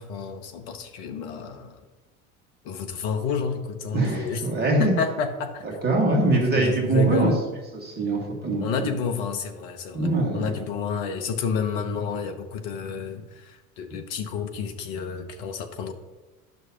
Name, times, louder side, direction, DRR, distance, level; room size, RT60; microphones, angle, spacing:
voice 1, 0.0-1.8 2.6-4.4 4.8-5.7 6.1-7.4 8.6-15.9, left 6 dB, 55° left, 7 dB, 1.2 m, -30 dB
voice 2, 3.9-4.9 5.6-7.3 7.8-8.9 9.9-10.4, right 2 dB, 20° right, -1 dB, 2.0 m, -23 dB
11.0 x 6.2 x 2.9 m, 1.2 s
hypercardioid pair, 80°, 42 cm